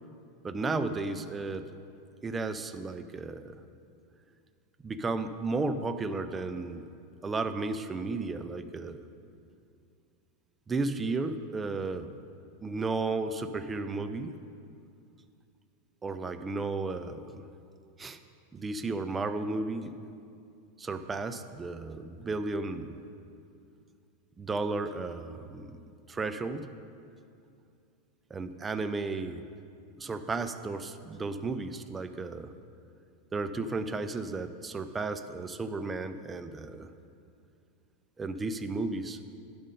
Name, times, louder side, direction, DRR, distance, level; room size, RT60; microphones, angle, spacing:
voice 1, 0.4-1.7 2.2-3.6 4.8-6.9 7.2-9.0 10.7-12.1 12.6-14.4 16.0-17.5 18.0-18.2 18.5-20.0 20.8-23.0 24.4-26.7 28.3-29.4 30.0-32.5 33.3-36.9 38.2-39.2, right 3 dB, 15° right, 9 dB, 0.5 m, -34 dB
11.0 x 5.2 x 5.3 m, 2.4 s
figure-of-eight pair, 85°, 0 cm